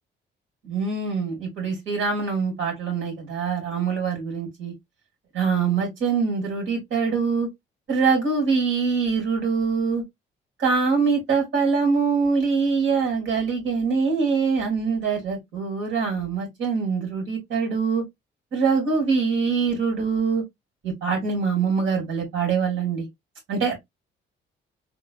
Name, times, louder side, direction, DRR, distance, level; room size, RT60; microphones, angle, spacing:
voice 1, 0.6-4.7 5.3-7.5 7.9-10.0 10.6-18.0 18.5-20.4 20.8-23.1 23.5-23.8, right 5 dB, 75° right, 2.7 m, -24 dB
3.6 x 3.5 x 2.4 m
cardioid pair, 90°, 20 cm